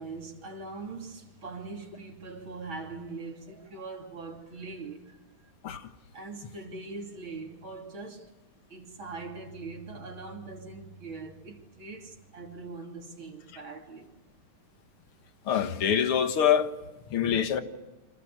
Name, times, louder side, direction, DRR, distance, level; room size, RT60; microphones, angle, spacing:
voice 1, 0.0-5.2 5.8-8.3 8.7-14.2, right 3 dB, 65° right, 3.7 m, -42 dB
voice 2, 15.5-16.7 17.1-17.6, left 9 dB, 80° left, 2.4 m, -25 dB
29.0 x 26.0 x 6.4 m
omnidirectional pair, 2.4 m